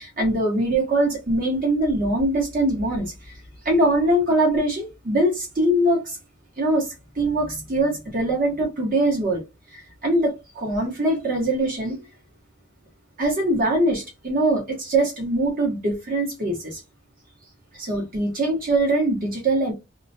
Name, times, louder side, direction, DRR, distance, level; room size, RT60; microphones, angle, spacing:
voice 1, 0.0-3.4 3.6-6.2 6.6-9.4 9.7-12.0 13.2-16.8 17.7-19.7, right 1 dB, 45° right, 0.9 m, -22 dB
2.3 x 2.0 x 2.6 m
head